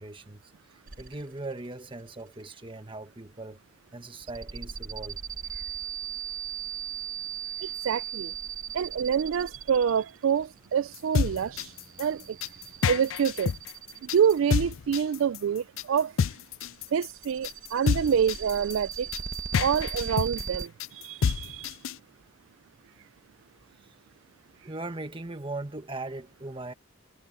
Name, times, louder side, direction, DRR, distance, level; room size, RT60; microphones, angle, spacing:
voice 1, 0.0-3.6 3.9-5.2 24.5-26.7, right 2 dB, 25° right, 1.5 m, -39 dB
sound 1, 0.9-1.5 1.8-2.3 4.1-14.6 16.5-20.7, right 7 dB, 45° right, 1.5 m, -38 dB
voice 2, 7.6-8.3 8.7-11.7 12.0-12.4 12.9-13.5 14.0-16.1 16.9-19.1 19.6-21.7, right 7 dB, 75° right, 0.3 m, -27 dB
sound 2, 10.9-22.0, left 6 dB, 80° left, 0.4 m, -28 dB
head